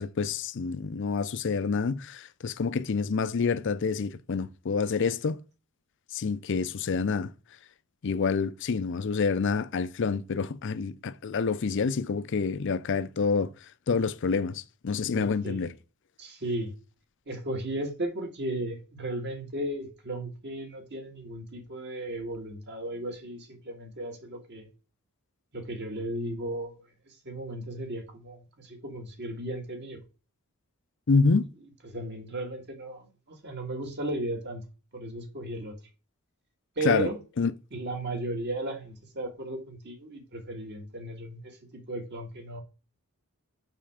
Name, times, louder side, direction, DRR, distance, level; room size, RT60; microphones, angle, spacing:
voice 1, 0.0-5.4 6.1-7.3 8.0-13.5 13.9-15.7 31.1-31.5 36.8-37.1 37.4-37.5, left 5 dB, 55° left, 0.5 m, -27 dB
voice 2, 15.1-15.7 16.2-16.7 17.3-24.7 25.5-26.8 27.1-30.0 31.8-34.6 34.9-35.7 36.8-37.2 37.7-42.6, right 1 dB, 50° right, 1.9 m, -35 dB
5.7 x 5.6 x 5.0 m
head